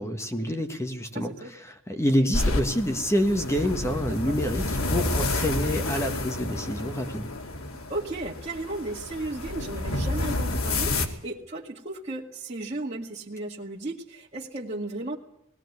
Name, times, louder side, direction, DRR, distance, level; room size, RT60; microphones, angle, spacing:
voice 1, 0.0-1.3 1.9-7.3, equal, 15° left, 6 dB, 1.6 m, -27 dB
voice 2, 1.1-1.5 4.1-4.4 7.9-15.2, right 2 dB, 30° right, -4 dB, 2.1 m, -35 dB
sound 1, 2.3-11.1, left 2 dB, 85° left, 2.6 m, -30 dB
20.0 x 16.5 x 9.6 m, 0.78 s
head